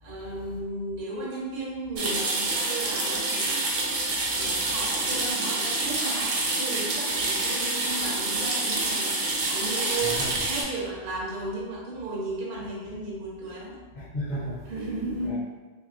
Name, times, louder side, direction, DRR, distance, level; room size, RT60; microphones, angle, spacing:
voice 1, 0.0-3.7 4.3-13.8 14.7-15.4, right 2 dB, 60° right, -4 dB, 0.7 m, -35 dB
sound 1, 2.0-10.6, right 2 dB, 90° right, 0.9 m, -27 dB
voice 2, 4.4-4.7 10.0-10.4 14.0-14.7 15.2-15.4, equal, 50° left, -5 dB, 0.6 m, -35 dB
2.8 x 2.5 x 2.4 m, 1.3 s
omnidirectional pair, 1.1 m